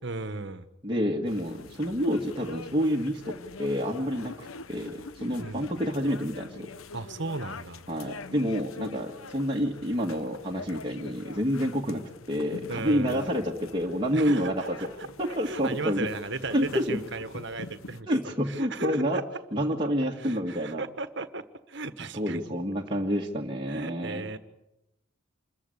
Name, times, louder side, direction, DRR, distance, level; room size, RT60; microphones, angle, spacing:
voice 1, 0.0-0.7 5.4-5.8 6.9-7.9 11.8-12.0 12.7-13.3 14.1-15.1 15.4-18.1 18.5-19.2 20.2-22.5 23.7-24.4, right 3 dB, 55° right, 12 dB, 1.5 m, -36 dB
voice 2, 0.8-6.7 7.9-14.9 15.2-16.1 16.5-17.0 18.1-19.2 19.5-20.8 22.1-24.2, equal, 25° right, -1 dB, 1.8 m, -28 dB
sound 1, 1.3-18.0, left 4 dB, 85° left, 1.0 m, -45 dB
26.5 x 14.5 x 10.0 m, 0.91 s
head